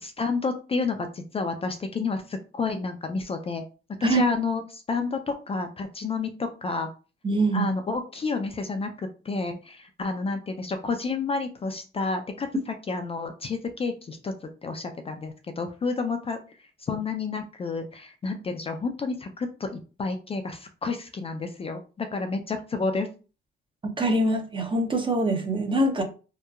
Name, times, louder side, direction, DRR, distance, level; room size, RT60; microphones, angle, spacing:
voice 1, 0.0-3.6 4.0-6.9 7.5-14.3 14.6-16.4 16.8-23.1, left 4 dB, 30° left, 0.4 m, -30 dB
voice 2, 7.2-7.7 23.8-26.0, right 1 dB, 25° right, 0.6 m, -24 dB
2.8 x 2.2 x 2.3 m
cardioid pair, 90°, 20 cm